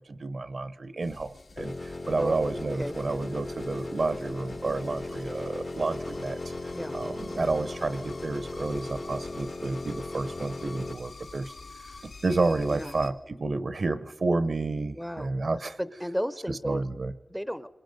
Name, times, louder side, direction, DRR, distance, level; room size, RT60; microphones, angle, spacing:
voice 1, 0.0-11.5 11.8-15.8 16.5-17.1, right 3 dB, 60° right, 13 dB, 0.7 m, -30 dB
sound 1, 1.0-13.1, left 3 dB, 85° left, 1.9 m, -47 dB
sound 2, 1.6-10.9, left 2 dB, 45° left, 0.8 m, -37 dB
voice 2, 2.2-2.5 2.8-3.0 6.7-7.0 12.7-13.0 14.9-15.3 15.8-16.8 17.3-17.7, equal, ahead, 15 dB, 0.6 m, -33 dB
27.0 x 21.5 x 5.3 m, 1.2 s
wide cardioid pair, 100°, 0 cm